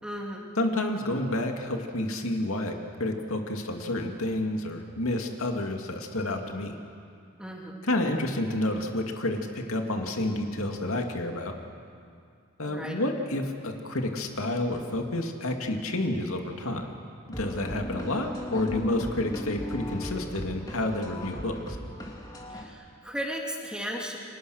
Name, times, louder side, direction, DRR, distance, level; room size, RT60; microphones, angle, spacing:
voice 1, 0.0-0.5 7.4-7.8 12.6-13.0 22.5-24.2, equal, 5° right, -1 dB, 2.7 m, -35 dB
voice 2, 0.6-6.7 7.9-11.5 12.6-17.0 17.4-21.8, left 1 dB, 85° left, 3 dB, 2.4 m, -30 dB
sound 1, 17.3-22.7, equal, 20° left, 2.8 m, -37 dB
30.0 x 24.5 x 6.5 m, 2.4 s
head